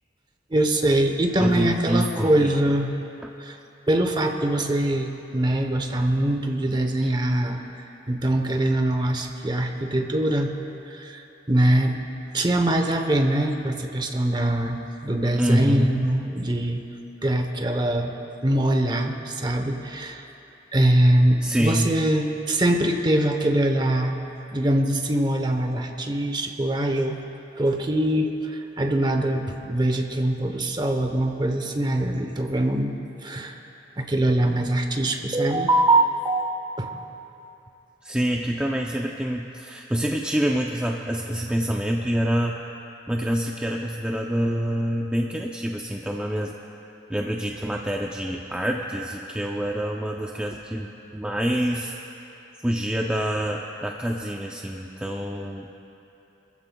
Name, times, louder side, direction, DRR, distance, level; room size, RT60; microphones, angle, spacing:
voice 1, 0.5-2.9 3.4-3.6 3.9-7.6 8.1-10.5 10.9-12.0 12.3-16.8 17.2-18.1 18.4-20.3 20.7-24.2 24.5-27.2 27.6-33.6 34.0-36.5 36.8-36.9, right 1 dB, 25° right, 4 dB, 0.9 m, -23 dB
voice 2, 1.4-2.6 7.0-7.1 15.4-16.0 21.4-21.9 38.0-42.6 43.1-46.6 47.1-52.0 52.6-55.7, equal, 5° right, 0 dB, 0.5 m, -26 dB
25.0 x 14.5 x 2.3 m, 2.9 s
head